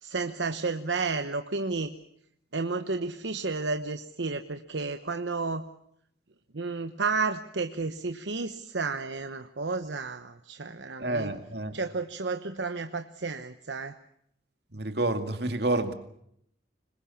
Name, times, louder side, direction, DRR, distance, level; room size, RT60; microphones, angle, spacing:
voice 1, 0.0-1.9 2.5-5.7 6.5-11.4 11.7-14.0, right 4 dB, 75° right, 1.0 m, -32 dB
voice 2, 11.0-11.8 14.7-15.9, right 2 dB, 60° right, 2.2 m, -29 dB
26.0 x 21.5 x 7.1 m
head